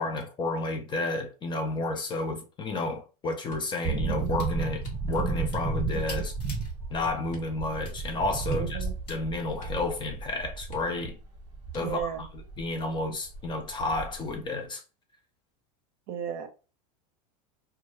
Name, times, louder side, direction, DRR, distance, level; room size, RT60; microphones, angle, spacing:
voice 1, 0.0-6.4 6.9-8.8 9.1-11.2 11.7-12.1 12.6-14.8, left 2 dB, 25° left, 0.5 m, -31 dB
sound 1, 3.4-3.9 4.8-5.4 6.0-6.3 7.3-7.6 7.9-8.0 8.4-9.2 9.5-10.0 10.3-10.4 10.7-11.2 11.7-12.2 12.9-13.5 13.9-14.3, left 3 dB, 40° left, 0.9 m, -50 dB
sound 2, 3.8-12.7 12.9-13.0 13.3-14.3 14.6-14.7, right 4 dB, 30° right, 1.0 m, -33 dB
sound 3, 4.2-4.5 4.8-6.7 7.2-8.0 9.0-9.2, left 2 dB, 85° left, 1.0 m, -46 dB
voice 2, 8.5-8.9 11.8-12.3 16.1-16.5, right 9 dB, 45° right, 0.6 m, -34 dB
2.2 x 2.1 x 3.2 m
hypercardioid pair, 110°, 20 cm